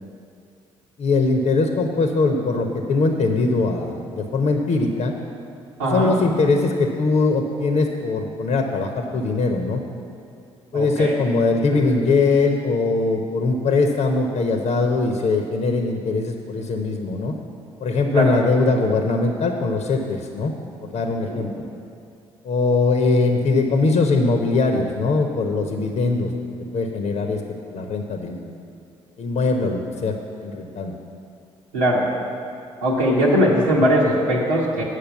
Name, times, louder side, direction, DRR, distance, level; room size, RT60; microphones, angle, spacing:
voice 1, 1.0-5.1 5.8-9.8 10.7-17.3 17.8-20.5 20.8-21.6 22.4-26.3 26.7-27.4 27.7-28.5 29.2-30.9, left 3 dB, 55° left, 3 dB, 0.9 m, -21 dB
voice 2, 5.8-6.1 10.7-11.1 11.7-11.8 18.1-18.3 21.3-21.4 31.7-32.0 32.8-34.8, equal, 90° right, -8 dB, 1.1 m, -20 dB
9.2 x 6.5 x 7.1 m, 2.5 s
hypercardioid pair, 45°, 15 cm